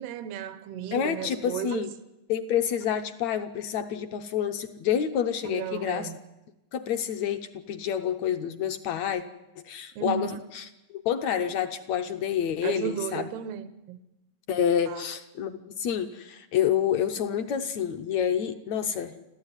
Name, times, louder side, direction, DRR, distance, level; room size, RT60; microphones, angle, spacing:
voice 1, 0.0-1.9 5.4-6.2 10.0-10.4 12.6-14.0 14.9-15.0, right 9 dB, 85° right, 3.1 m, -34 dB
voice 2, 0.9-1.9 2.3-6.1 6.7-9.2 9.6-10.3 10.6-13.3 14.5-19.1, left 9 dB, 70° left, 1.7 m, -28 dB
28.5 x 13.5 x 9.9 m
omnidirectional pair, 4.4 m